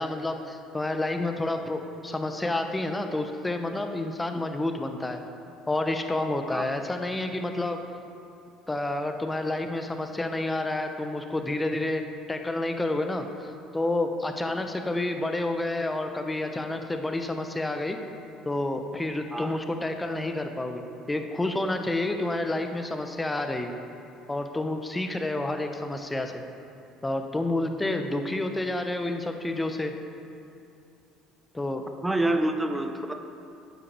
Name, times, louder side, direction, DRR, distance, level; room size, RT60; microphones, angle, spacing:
voice 1, 0.0-5.2 5.7-7.8 8.7-12.0 12.3-18.0 18.4-23.8 24.3-26.4 27.0-29.9 31.5-31.9, left 2 dB, 15° left, 6 dB, 1.0 m, -29 dB
voice 2, 32.0-33.1, right 1 dB, 10° right, 6 dB, 0.9 m, -27 dB
12.5 x 8.3 x 4.6 m, 2.6 s
supercardioid pair, 90°, 0 cm